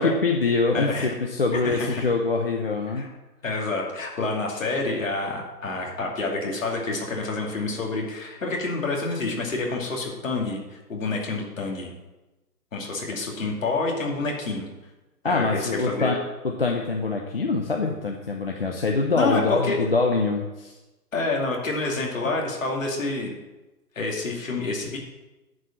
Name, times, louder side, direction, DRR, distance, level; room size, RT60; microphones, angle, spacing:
voice 1, 0.0-3.1 15.2-16.2 16.4-20.7, left 3 dB, 40° left, 1 dB, 0.7 m, -24 dB
voice 2, 0.7-1.1 1.6-2.0 3.0-3.1 3.4-11.9 12.7-14.7 15.2-16.1 19.1-19.8 21.1-23.3 23.9-25.0, left 3 dB, 55° left, -1 dB, 2.6 m, -28 dB
10.5 x 4.7 x 7.3 m, 1.1 s
hypercardioid pair, 175°, 48 cm